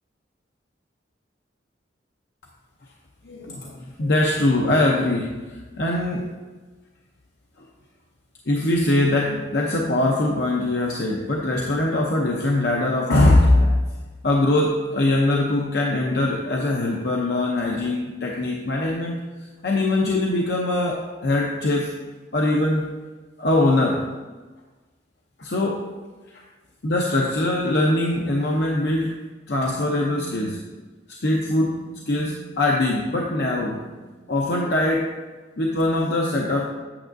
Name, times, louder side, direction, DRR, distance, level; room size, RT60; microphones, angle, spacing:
voice 1, 3.2-6.3 8.5-13.8 14.2-19.2 19.6-21.9 22.3-22.9 23.4-24.0 25.4-25.8 26.3-26.4 26.8-29.1 29.5-30.6 31.2-33.8 34.3-35.1 35.6-36.7, left 1 dB, 65° left, -1 dB, 0.7 m, -22 dB
8.7 x 7.0 x 2.6 m, 1.3 s
head